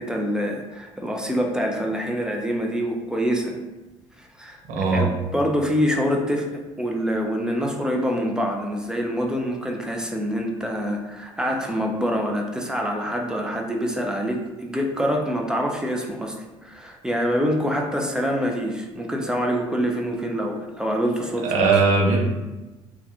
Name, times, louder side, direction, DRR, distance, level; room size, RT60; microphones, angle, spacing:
voice 1, 0.0-3.5 4.2-16.4 16.6-21.8, equal, 5° right, 1 dB, 0.4 m, -25 dB
voice 2, 4.7-5.1 21.4-22.2, right 4 dB, 50° right, 0 dB, 0.6 m, -19 dB
2.2 x 2.2 x 2.8 m, 1.1 s
figure-of-eight pair, 55°, 16 cm